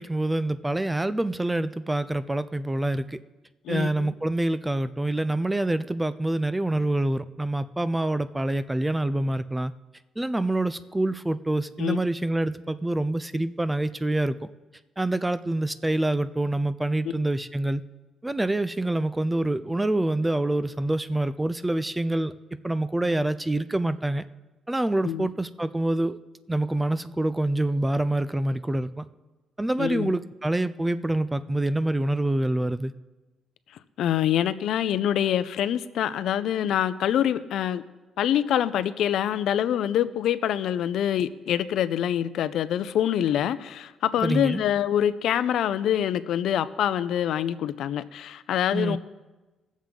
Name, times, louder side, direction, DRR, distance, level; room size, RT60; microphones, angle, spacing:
voice 1, 0.0-3.2 3.7-9.7 10.2-14.4 15.0-17.8 18.2-22.3 22.6-24.2 24.7-26.2 26.5-29.1 29.6-32.9 44.2-44.6 48.7-49.0, right 1 dB, 10° right, 14 dB, 0.3 m, -26 dB
voice 2, 3.7-4.1 11.8-12.0 17.0-17.1 25.0-25.3 29.8-30.1 34.0-37.8 38.2-49.0, left 10 dB, 70° left, 14 dB, 0.5 m, -25 dB
20.5 x 7.3 x 3.7 m, 1.1 s
cardioid pair, 155°, 0 cm